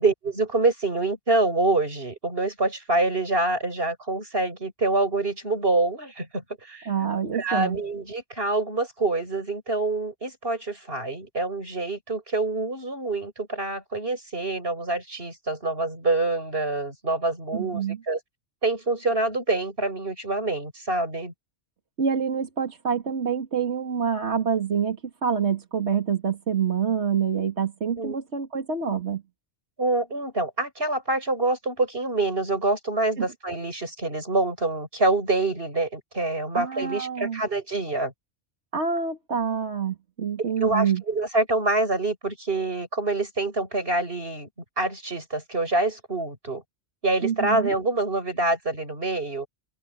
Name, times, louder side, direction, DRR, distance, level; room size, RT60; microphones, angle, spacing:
voice 1, 0.0-6.9 7.3-18.2 18.6-21.3 28.0-28.2 29.8-38.1 40.6-44.5 44.8-46.6 47.0-49.5, right 2 dB, 60° right, 7.6 m, -26 dB
voice 2, 6.9-7.8 17.5-18.0 22.0-29.2 33.2-33.3 36.5-37.4 38.7-41.0 47.2-47.7, right 7 dB, 80° right, 2.4 m, -26 dB
open air
omnidirectional pair, 1.1 m